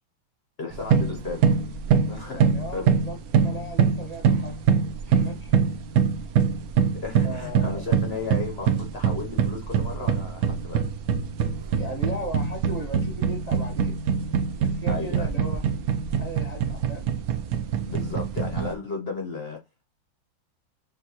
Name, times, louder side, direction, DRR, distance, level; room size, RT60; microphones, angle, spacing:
voice 1, 0.6-1.5 2.1-3.0 6.9-10.9 14.9-15.3 17.9-19.6, left 4 dB, 70° left, 0.6 m, -34 dB
sound 1, 0.7-18.7, right 7 dB, 85° right, 0.8 m, -24 dB
voice 2, 2.3-4.9 5.2-5.8 7.2-7.9 11.8-13.9 14.6-15.6 16.2-17.0, right 1 dB, 40° right, 0.6 m, -37 dB
7.2 x 2.4 x 2.8 m
omnidirectional pair, 2.2 m